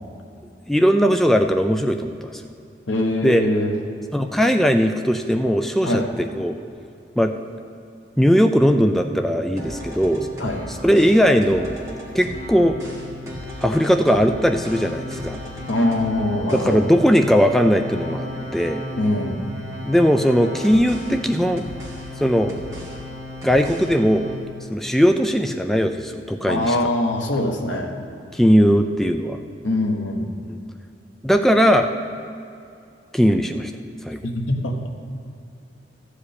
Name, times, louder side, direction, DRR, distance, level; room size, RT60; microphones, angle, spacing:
voice 1, 0.7-2.4 3.2-3.4 4.1-6.6 7.2-7.3 8.2-10.3 10.7-11.7 12.1-12.8 13.6-15.4 16.5-18.8 19.9-21.6 22.2-22.5 23.4-24.3 24.7-26.8 28.3-29.4 31.2-31.9 33.1-33.7 34.0-34.2, equal, ahead, 6 dB, 0.3 m, -18 dB
voice 2, 2.9-3.7 5.8-6.1 10.4-10.7 15.7-16.9 19.0-19.4 26.5-27.9 29.6-30.3 34.2-34.8, left 1 dB, 85° left, 2 dB, 1.3 m, -23 dB
sound 1, 8.2-9.3 9.6-10.6, equal, 60° left, 2.5 m, -38 dB
sound 2, 9.6-24.4, equal, 15° right, 1.9 m, -34 dB
14.0 x 5.0 x 8.4 m, 2.6 s
head